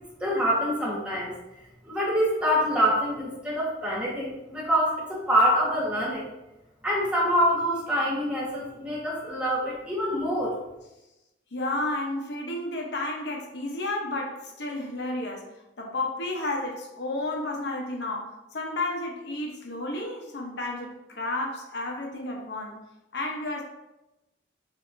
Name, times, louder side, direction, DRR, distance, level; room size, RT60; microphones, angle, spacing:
voice 1, 0.2-1.3 1.8-6.3 6.8-10.5, equal, 5° right, -6 dB, 1.3 m, -25 dB
voice 2, 11.5-15.5 15.8-22.8 23.1-23.6, left 2 dB, 65° left, 0 dB, 0.9 m, -32 dB
6.7 x 2.8 x 2.6 m, 0.95 s
head